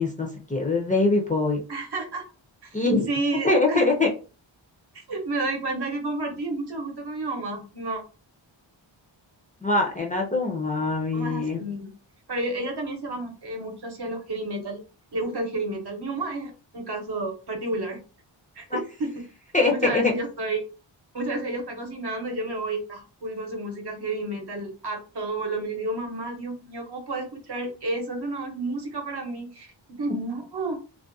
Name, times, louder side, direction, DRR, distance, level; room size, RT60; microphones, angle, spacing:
voice 1, 0.0-1.6 2.7-3.1 3.4-4.1 9.6-11.7 18.7-18.8 19.5-20.1, left 3 dB, 20° left, -2 dB, 0.4 m, -23 dB
voice 2, 1.7-2.2 2.6-2.7 3.1-3.9 4.9-8.0 11.1-11.9 12.3-14.8 15.1-18.0 18.6-19.2 19.7-20.6 21.1-30.8, right 2 dB, 55° right, 2 dB, 0.8 m, -31 dB
2.4 x 2.1 x 2.6 m, 0.35 s
wide cardioid pair, 110°, 46 cm